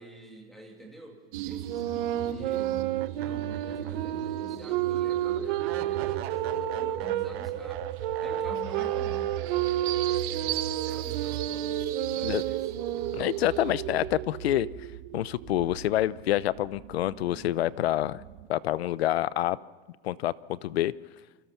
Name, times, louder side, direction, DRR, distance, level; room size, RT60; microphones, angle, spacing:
voice 1, 0.0-13.3, right 1 dB, ahead, 2 dB, 2.4 m, -48 dB
sound 1, 1.3-18.5, right 11 dB, 30° right, 1.0 m, -36 dB
sound 2, 1.7-7.3 8.0-13.5, right 12 dB, 50° right, 1.3 m, -31 dB
sound 3, 3.0-4.3 4.6-4.7 5.6-9.9, right 13 dB, 70° right, 0.9 m, -44 dB
voice 2, 13.1-14.7 15.1-18.2 18.5-19.6 20.0-20.9, left 13 dB, 70° left, 19 dB, 0.8 m, -27 dB
28.5 x 24.0 x 5.9 m, 1.4 s
supercardioid pair, 175°, 32 cm